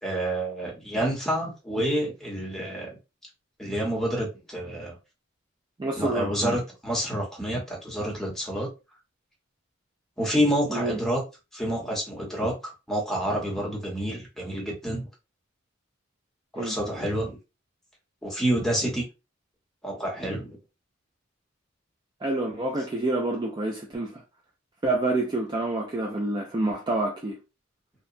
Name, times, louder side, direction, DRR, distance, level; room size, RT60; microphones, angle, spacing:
voice 1, 0.0-3.0 3.6-5.0 6.0-8.7 10.2-11.2 11.5-15.1 16.5-17.4 18.2-19.1 19.8-20.6, equal, ahead, 0.9 m, -28 dB
voice 2, 5.8-6.6 10.7-11.0 16.6-16.8 22.2-24.2 24.8-27.4, right 2 dB, 20° right, 0.3 m, -28 dB
2.8 x 2.1 x 2.5 m
head